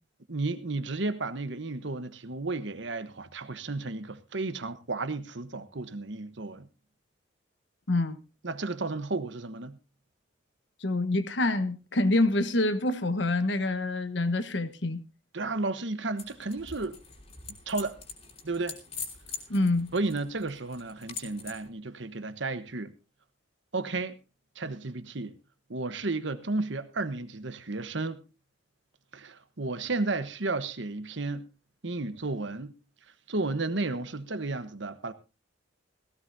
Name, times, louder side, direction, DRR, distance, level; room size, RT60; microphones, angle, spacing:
voice 1, 0.3-6.7 8.4-9.8 15.3-17.0 17.7-18.0 18.4-18.8 19.9-22.9 23.7-24.1 24.5-25.4 25.7-28.2 29.1-31.4 31.8-32.7 33.3-35.1, right 3 dB, 70° right, 1.2 m, -33 dB
voice 2, 7.9-8.2 10.8-15.0 19.5-19.9, left 2 dB, 65° left, 1.2 m, -26 dB
sound 1, 16.2-21.7, left 6 dB, 35° left, 3.4 m, -43 dB
17.5 x 16.0 x 2.7 m
head